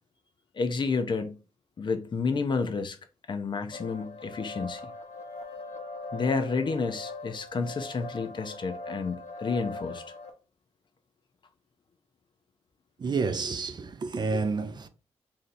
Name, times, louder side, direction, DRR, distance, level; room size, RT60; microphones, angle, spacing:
voice 1, 0.5-1.4 1.8-3.0 3.3-4.9 6.1-10.0, left 4 dB, 45° left, 0.6 m, -30 dB
sound 1, 3.7-10.3, left 2 dB, 75° left, 1.0 m, -41 dB
voice 2, 13.0-14.9, right 4 dB, 40° right, 0.5 m, -29 dB
3.2 x 2.8 x 3.9 m
cardioid pair, 110°, 11 cm